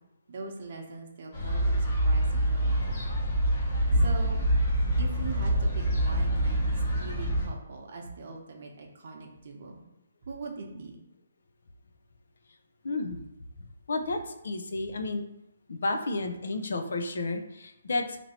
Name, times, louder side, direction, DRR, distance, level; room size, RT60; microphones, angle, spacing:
voice 1, 0.3-2.9 4.0-4.4 5.0-9.8 10.2-11.0, right 3 dB, 50° right, 1 dB, 0.8 m, -42 dB
sound 1, 1.3-7.5, right 1 dB, 35° left, 1.1 m, -26 dB
voice 2, 12.8-13.2 13.9-15.3 15.7-18.2, left 2 dB, 70° left, 6 dB, 0.5 m, -31 dB
2.9 x 2.6 x 4.2 m, 0.93 s
hypercardioid pair, 165°, 0 cm